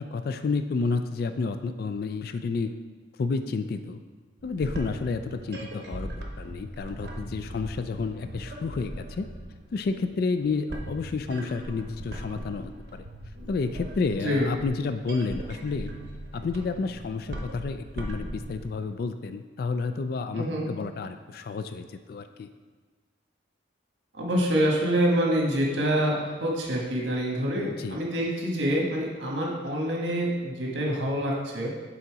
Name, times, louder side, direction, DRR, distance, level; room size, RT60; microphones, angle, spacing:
voice 1, 0.0-2.7 3.2-4.0 4.4-9.3 9.7-13.0 13.5-15.9 16.3-22.5 27.6-28.0, left 4 dB, 55° left, 9 dB, 0.3 m, -30 dB
sound 1, 4.4-18.8, right 1 dB, 60° right, 0.8 m, -39 dB
voice 2, 20.3-20.7 24.1-31.7, equal, 90° right, -2 dB, 1.4 m, -26 dB
7.0 x 3.9 x 4.7 m, 1.4 s
head